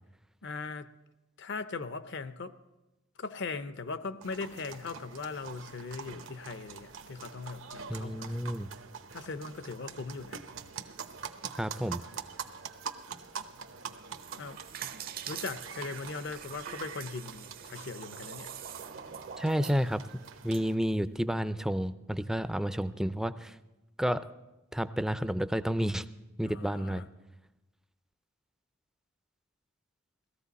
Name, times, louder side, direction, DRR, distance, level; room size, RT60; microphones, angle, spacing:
voice 1, 0.4-0.9 1.4-2.5 3.2-8.4 9.1-10.4 14.4-14.6 15.3-18.5 26.4-27.1, left 4 dB, 60° left, 12 dB, 0.7 m, -39 dB
sound 1, 4.2-20.8, right 6 dB, 80° right, 0.9 m, -45 dB
voice 2, 7.9-8.7 11.6-12.0 19.4-20.0 20.4-23.5 24.0-24.2 24.7-26.0 26.4-27.0, equal, 5° right, 13 dB, 0.4 m, -30 dB
sound 2, 14.0-20.6, right 8 dB, 50° right, 0.6 m, -44 dB
18.0 x 14.0 x 4.1 m, 1.0 s
head